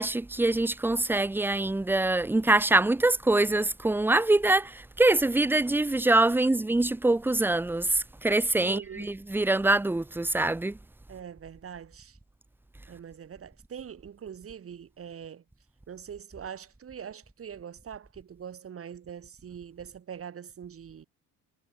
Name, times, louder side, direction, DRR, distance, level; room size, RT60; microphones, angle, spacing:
voice 1, 0.0-10.8, right 2 dB, 5° right, 0.8 m, -24 dB
voice 2, 8.6-9.1 11.1-12.2 12.9-15.4 15.9-21.1, right 8 dB, 40° right, 4.2 m, -43 dB
cardioid pair, 120°, 33 cm